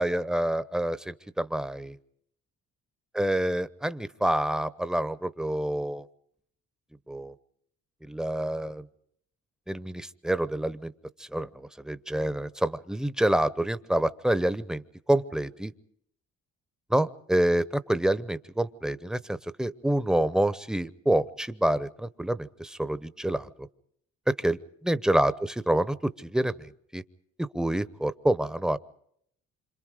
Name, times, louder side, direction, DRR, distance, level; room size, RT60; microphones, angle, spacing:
voice 1, 0.0-2.0 3.1-6.0 7.1-7.3 8.0-8.8 9.7-10.9 11.2-11.5 11.8-14.8 15.1-15.7 16.9-23.5 24.3-24.6 24.9-26.5 26.9-27.0 27.4-28.8, right 1 dB, ahead, 14 dB, 0.8 m, -27 dB
27.0 x 26.0 x 5.0 m, 0.69 s
cardioid pair, 90°, 30 cm